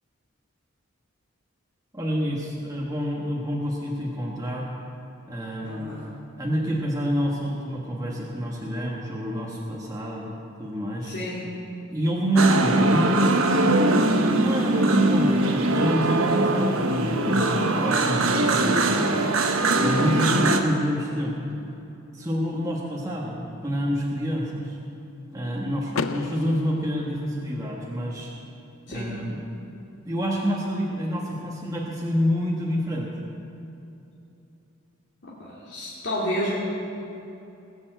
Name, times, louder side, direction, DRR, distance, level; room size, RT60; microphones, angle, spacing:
voice 1, 1.9-4.7 5.3-5.9 6.4-11.1 11.9-19.3 19.8-21.4 22.1-24.8 25.3-28.3 28.9-29.4 30.0-33.1, equal, 15° right, -3 dB, 1.4 m, -27 dB
voice 2, 5.6-6.1 11.0-11.5 20.1-20.4 28.9-29.2 35.2-36.5, equal, 55° left, -7 dB, 2.4 m, -31 dB
sound 1, 12.4-20.6, right 2 dB, 75° right, 1.1 m, -22 dB
Car / Door, 25.9-27.9, left 5 dB, 80° left, 0.5 m, -33 dB
19.5 x 7.2 x 7.8 m, 2.8 s
head